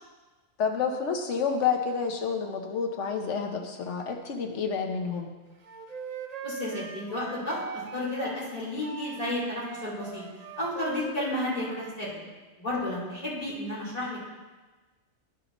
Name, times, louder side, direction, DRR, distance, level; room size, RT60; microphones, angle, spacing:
voice 1, 0.6-5.3, left 6 dB, 65° left, 4 dB, 1.2 m, -29 dB
Wind instrument woodwind instrument, 5.6-8.4 8.8-11.9, right 4 dB, 50° right, 0.5 m, -41 dB
voice 2, 6.4-7.6 7.9-10.2 10.6-12.2 12.6-14.2, left 1 dB, 30° left, -8 dB, 2.6 m, -32 dB
11.0 x 6.1 x 3.0 m, 1.3 s
omnidirectional pair, 1.3 m